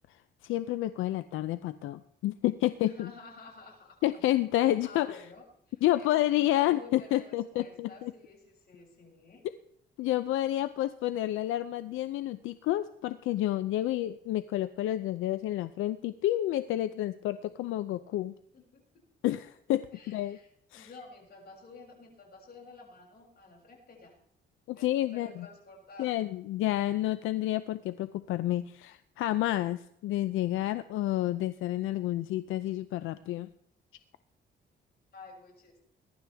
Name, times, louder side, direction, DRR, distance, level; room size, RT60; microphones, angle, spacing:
voice 1, 0.4-3.1 4.0-5.1 5.8-8.1 10.0-18.3 19.2-20.4 20.7-20.9 24.7-25.5 26.0-33.5, left 14 dB, 90° left, 13 dB, 0.6 m, -30 dB
voice 2, 2.8-4.2 4.6-9.5 18.5-18.8 19.9-24.1 24.7-26.2 35.1-35.8, left 3 dB, 55° left, -1 dB, 7.0 m, -51 dB
21.0 x 11.5 x 3.5 m, 0.72 s
cardioid pair, 90°, 20 cm